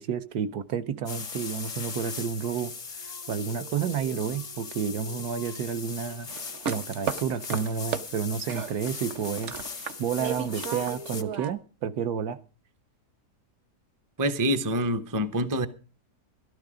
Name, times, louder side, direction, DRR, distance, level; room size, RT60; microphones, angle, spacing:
voice 1, 0.0-2.7 3.0-6.3 6.7-9.5 10.0-12.4, right 7 dB, 70° right, 1.3 m, -30 dB
sound 1, 1.1-11.2, left 5 dB, 50° left, 0.4 m, -39 dB
sound 2, 6.3-8.1 8.5-11.5, right 7 dB, 55° right, 1.0 m, -34 dB
voice 2, 14.2-15.7, right 1 dB, 20° right, 0.5 m, -26 dB
13.5 x 12.5 x 5.0 m
omnidirectional pair, 1.8 m